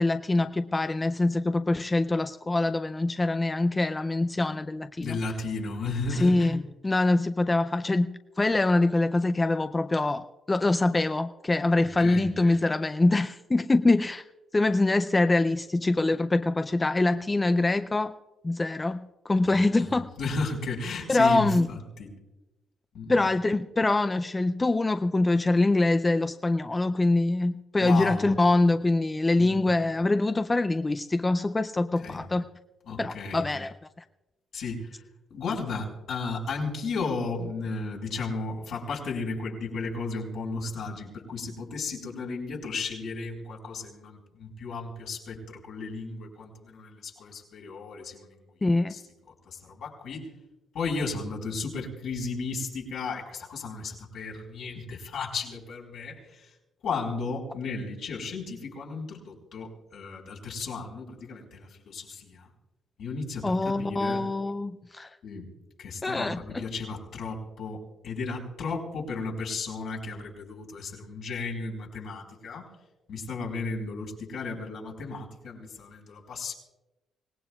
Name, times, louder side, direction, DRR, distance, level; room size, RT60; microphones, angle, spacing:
voice 1, 0.0-5.2 6.1-14.2 14.5-18.1 18.4-20.1 21.1-21.7 23.1-32.4 33.0-33.7 48.6-48.9 63.4-65.1 66.0-66.4, left 2 dB, 20° left, 10 dB, 0.4 m, -24 dB
voice 2, 5.0-6.5 11.8-12.3 19.4-19.5 19.8-22.1 22.9-23.3 27.8-28.3 29.4-29.7 32.0-32.2 32.9-33.4 34.5-35.0 35.3-48.3 48.9-49.0 49.4-50.3 50.7-56.5 56.8-62.5 63.0-64.2 65.2-65.5 65.8-72.7 73.1-76.5, left 3 dB, 70° left, -1 dB, 4.7 m, -34 dB
25.5 x 18.0 x 2.4 m, 1.0 s
cardioid pair, 90°, 0 cm